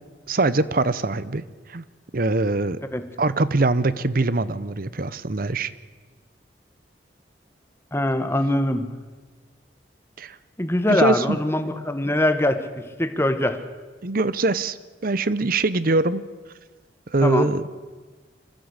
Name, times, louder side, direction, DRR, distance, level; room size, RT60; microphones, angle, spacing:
voice 1, 0.3-1.4 1.7-1.8 2.1-2.8 3.2-5.7 10.2-10.3 10.9-11.4 14.0-14.8 15.0-16.2 17.1-17.6, right 2 dB, 55° right, 16 dB, 0.9 m, -22 dB
voice 2, 7.9-8.9 10.6-12.6 13.0-13.6 17.2-17.5, left 1 dB, 15° left, 9 dB, 1.4 m, -22 dB
25.5 x 15.0 x 8.2 m, 1.4 s
head